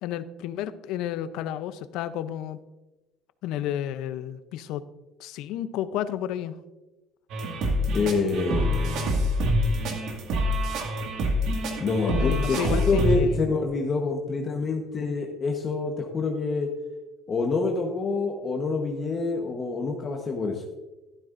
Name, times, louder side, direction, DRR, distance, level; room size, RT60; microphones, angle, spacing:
voice 1, 0.0-2.6 3.4-4.8 5.2-6.6 12.1-13.4, left 11 dB, 75° left, 13 dB, 0.6 m, -31 dB
sound 1, 7.3-13.2, equal, 65° right, 1.9 m, -26 dB
voice 2, 7.9-9.3 11.8-16.7 17.3-20.6, left 4 dB, 35° left, 1 dB, 1.1 m, -27 dB
12.5 x 11.5 x 2.6 m, 1.1 s
cardioid pair, 120°, 0 cm